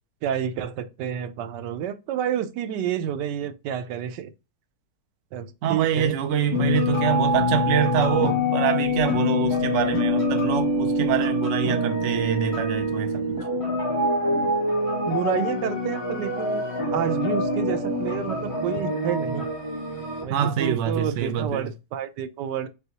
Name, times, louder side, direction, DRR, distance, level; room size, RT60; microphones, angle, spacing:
voice 1, 0.2-4.3 5.3-6.2 15.1-16.7 16.9-19.5 20.2-22.7, right 9 dB, 85° right, 1.2 m, -29 dB
voice 2, 5.6-13.4 20.3-21.7, right 8 dB, 60° right, 0.7 m, -25 dB
sound 1, 6.5-20.2, left 1 dB, 20° left, 1.6 m, -25 dB
4.4 x 3.4 x 2.8 m
omnidirectional pair, 1.8 m